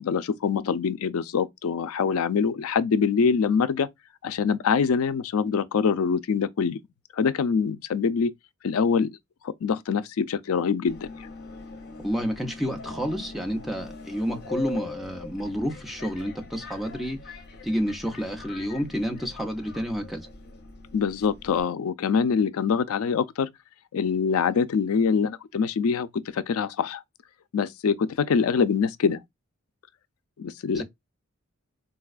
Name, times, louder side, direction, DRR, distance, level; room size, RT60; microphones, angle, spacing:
voice 1, 0.0-3.9 4.2-6.8 7.1-8.3 8.6-9.1 9.4-11.1 20.9-23.5 23.9-27.0 27.5-29.2 30.4-30.8, left 6 dB, 70° left, 0.4 m, -24 dB
Subway metro underground, 10.9-21.6, left 3 dB, 45° left, 0.8 m, -42 dB
voice 2, 12.0-17.2 17.6-20.3 30.7-30.8, equal, ahead, 0.6 m, -30 dB
4.1 x 2.3 x 2.2 m
head